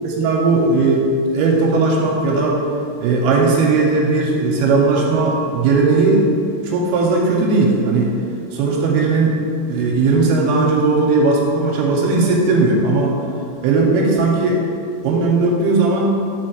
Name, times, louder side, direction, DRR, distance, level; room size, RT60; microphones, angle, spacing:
voice 1, 0.0-1.1 1.3-2.6 3.0-6.3 6.6-8.1 8.5-9.4 9.7-13.2 13.6-14.6 15.0-16.2, right 3 dB, 85° right, 0 dB, 2.4 m, -17 dB
5.6 x 4.6 x 6.1 m, 2.4 s
omnidirectional pair, 4.9 m